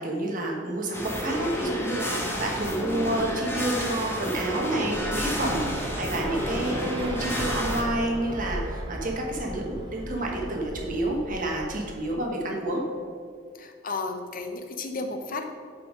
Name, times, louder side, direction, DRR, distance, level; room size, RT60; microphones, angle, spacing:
voice 1, 0.0-12.8, right 1 dB, 45° right, 0 dB, 1.4 m, -29 dB
sound 1, 0.9-7.8, equal, 15° left, 1.2 m, -31 dB
sound 2, 4.9-12.0, equal, 25° right, 0.8 m, -36 dB
voice 2, 13.5-15.5, left 3 dB, 45° left, 6 dB, 0.8 m, -33 dB
7.7 x 5.6 x 5.0 m, 2.2 s
head